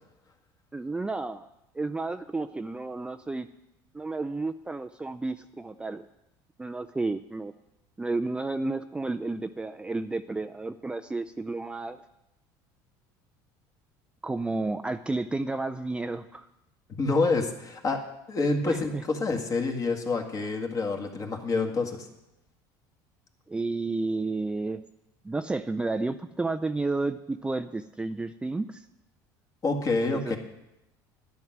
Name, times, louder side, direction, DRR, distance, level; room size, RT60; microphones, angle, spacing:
voice 1, 0.7-1.5 1.7-3.5 3.9-6.0 6.6-7.5 8.0-12.0 14.2-16.5 18.7-19.0 23.5-24.8 25.2-28.9 30.1-30.4, right 3 dB, 10° right, 8 dB, 0.4 m, -31 dB
voice 2, 17.0-18.0 18.3-22.1 29.6-30.4, left 3 dB, 35° left, 3 dB, 2.0 m, -27 dB
10.5 x 10.5 x 6.0 m, 0.90 s
supercardioid pair, 105°, 9 cm